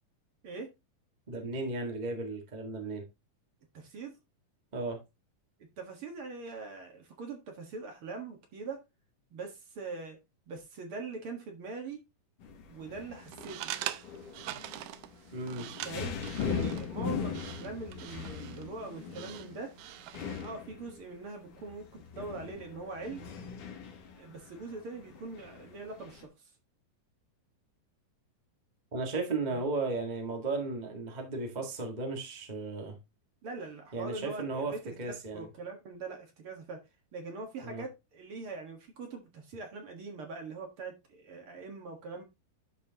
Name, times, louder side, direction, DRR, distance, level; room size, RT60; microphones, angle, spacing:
voice 1, 1.3-3.1 4.7-5.0 15.3-15.8 28.9-33.0 33.9-35.5 37.6-37.8, right 3 dB, 30° right, 0.8 m, -35 dB
voice 2, 3.7-4.2 5.6-8.8 9.3-10.2 10.5-12.0 12.7-13.7 15.8-16.1 16.5-19.7 20.2-23.3 24.2-26.3 29.5-29.6 33.4-36.8 37.1-42.2, right 3 dB, 50° right, 2.1 m, -42 dB
sound 1, 12.4-26.2, left 6 dB, 75° left, 3.3 m, -40 dB
sound 2, 13.2-20.5, right 13 dB, 80° right, 1.8 m, -43 dB
12.0 x 4.5 x 2.8 m
omnidirectional pair, 3.7 m